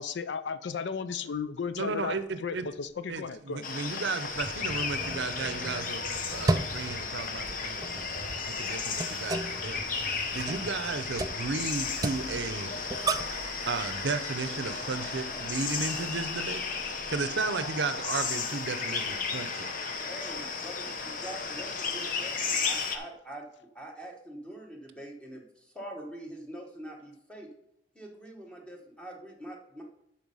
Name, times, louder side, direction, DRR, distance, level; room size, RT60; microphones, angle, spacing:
voice 1, 0.0-2.1 2.4-3.7, left 5 dB, 70° left, 13 dB, 0.5 m, -34 dB
voice 2, 1.8-2.7 3.1-6.0 6.3-8.1 8.5-9.8 10.3-12.7 13.7-16.6 17.1-19.7, right 4 dB, 70° right, 11 dB, 0.6 m, -34 dB
sound 1, 3.1-3.2 3.8-18.2, equal, 30° left, 1.5 m, -50 dB
sound 2, 3.6-23.0, left 5 dB, 45° left, 0.8 m, -34 dB
sound 3, 4.4-13.5, right 2 dB, 20° right, 0.3 m, -35 dB
voice 3, 20.0-27.5 27.9-29.8, right 1 dB, 5° left, 0 dB, 1.2 m, -44 dB
11.0 x 4.4 x 5.5 m, 0.79 s
head